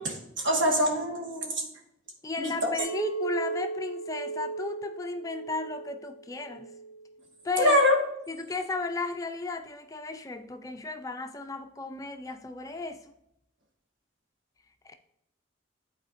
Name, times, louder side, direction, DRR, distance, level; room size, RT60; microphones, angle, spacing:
voice 1, 0.0-1.6 2.4-2.7 7.6-8.0, left 1 dB, 80° right, 1.5 m, -24 dB
voice 2, 2.2-6.7 7.4-7.8 8.3-13.1 14.8-14.9, left 3 dB, 15° left, 0.3 m, -34 dB
Chink clink, 2.8-7.1 7.6-8.0, right 4 dB, 50° right, 0.9 m, -37 dB
11.0 x 4.2 x 2.5 m
head